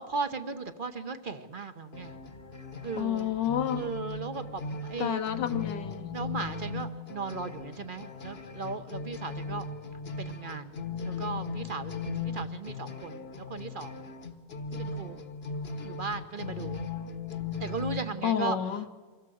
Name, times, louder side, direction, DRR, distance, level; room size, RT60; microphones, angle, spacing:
voice 1, 0.0-2.1 2.8-3.3 3.7-5.2 6.1-9.6 10.2-10.8 11.0-14.0 14.7-15.2 15.8-16.8 17.6-18.6, right 4 dB, 40° right, 0.8 m, -37 dB
sound 1, 1.9-18.0, left 4 dB, 40° left, 1.2 m, -38 dB
voice 2, 3.0-3.8 5.0-6.1 18.2-18.9, left 9 dB, 70° left, 1.5 m, -30 dB
24.5 x 17.0 x 7.8 m
omnidirectional pair, 2.0 m